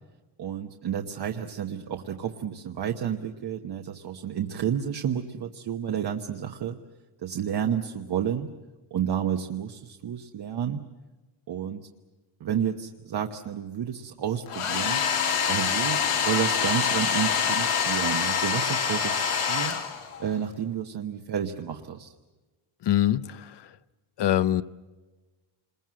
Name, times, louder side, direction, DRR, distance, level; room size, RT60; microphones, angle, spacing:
voice 1, 0.4-6.8 7.2-8.5 8.9-10.8 11.5-11.9 12.4-15.0 15.5-19.8 20.2-22.1, right 9 dB, 50° right, 1.1 m, -31 dB
Domestic sounds home sounds, 14.5-20.3, left 7 dB, 90° left, 3.2 m, -26 dB
voice 2, 22.8-23.6 24.2-24.6, left 12 dB, 55° left, 0.8 m, -24 dB
28.0 x 21.5 x 7.6 m
wide cardioid pair, 180°, 50 cm